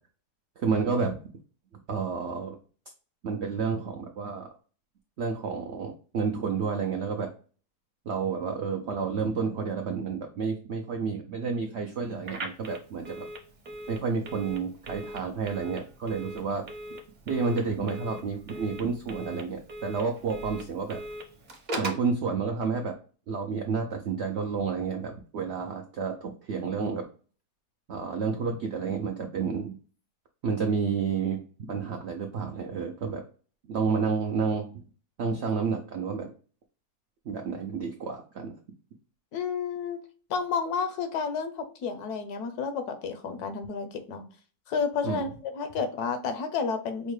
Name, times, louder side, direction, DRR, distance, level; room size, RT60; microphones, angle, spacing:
voice 1, 0.6-1.2 1.9-2.6 3.2-4.5 5.2-7.3 8.1-13.3 13.9-16.6 17.3-21.0 21.8-22.9 23.3-27.0 27.9-29.7 30.4-33.2 33.7-34.8 35.2-36.3 37.3-38.5 45.0-45.3, right 5 dB, 85° right, 3 dB, 0.6 m, -30 dB
Telephone, 12.2-22.1, right 1 dB, 40° right, 0.7 m, -40 dB
voice 2, 39.3-40.0 40.3-44.2 44.7-47.1, left 5 dB, 75° left, 9 dB, 1.1 m, -31 dB
5.4 x 2.1 x 3.1 m, 0.39 s
omnidirectional pair, 1.8 m